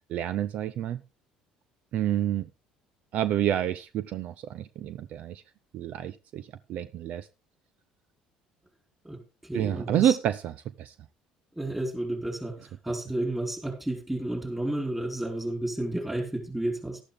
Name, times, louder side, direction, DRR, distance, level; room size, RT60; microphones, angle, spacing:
voice 1, 0.1-1.0 1.9-2.5 3.1-5.4 5.7-7.3 9.5-10.9, right 11 dB, 60° right, 0.6 m, -29 dB
voice 2, 9.0-10.2 11.6-17.0, right 1 dB, 10° right, 4.6 m, -32 dB
12.0 x 11.5 x 3.6 m
supercardioid pair, 75°, 3 cm